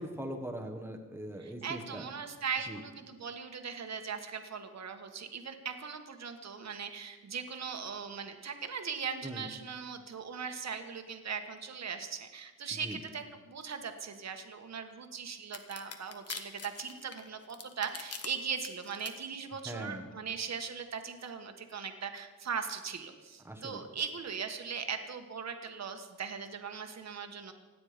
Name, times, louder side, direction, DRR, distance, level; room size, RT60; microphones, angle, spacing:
voice 1, 0.0-2.0 2.7-2.8 9.2-9.4 12.8-13.0 19.6-20.1 23.4-23.8, right 1 dB, 5° right, 3 dB, 1.3 m, -41 dB
voice 2, 1.4-27.5, right 6 dB, 55° right, 6 dB, 1.5 m, -39 dB
sound 1, 15.5-18.3 18.6-19.1, left 5 dB, 50° left, 1.4 m, -42 dB
25.5 x 9.7 x 5.1 m, 1.3 s
wide cardioid pair, 165°, 32 cm